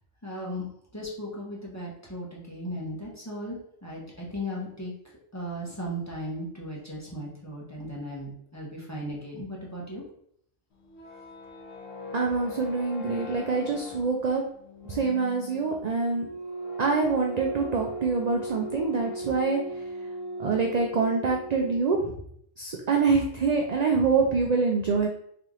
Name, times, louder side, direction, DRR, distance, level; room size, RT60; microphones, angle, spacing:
voice 1, 0.2-0.7 0.9-4.9 5.3-10.0, equal, 15° left, -5 dB, 0.9 m, -36 dB
sound 1, 10.7-22.0, right 1 dB, 85° left, 1.2 m, -38 dB
voice 2, 12.1-14.4 14.9-16.3 16.8-19.6 20.4-22.0 22.6-25.1, right 4 dB, 60° right, 1 dB, 0.4 m, -25 dB
3.4 x 2.9 x 3.6 m, 0.68 s
omnidirectional pair, 1.2 m